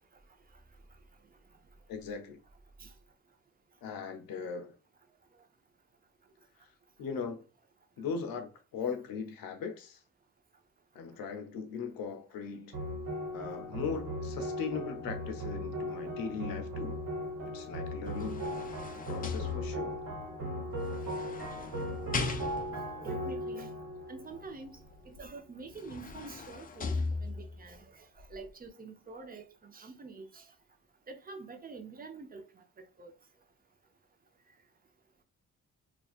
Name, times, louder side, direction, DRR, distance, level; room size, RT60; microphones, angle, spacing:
voice 1, 1.9-2.4 3.8-4.7 6.6-6.7 7.0-7.4 8.0-10.0 10.9-12.8 13.3-17.0 17.4-18.4 19.1-20.0, left 5 dB, 70° left, 0.6 m, -39 dB
sound 1, 12.7-25.2, equal, 70° right, 1.2 m, -38 dB
sound 2, 17.9-20.1 20.9-22.9 25.2-25.3 25.7-27.7 28.2-28.3, left 3 dB, 25° left, 0.4 m, -38 dB
voice 2, 22.7-23.8 24.1-24.8 25.0-30.5 31.1-32.6 33.0-33.1, right 4 dB, 25° right, 0.6 m, -47 dB
2.4 x 2.3 x 2.3 m
supercardioid pair, 50°, 36 cm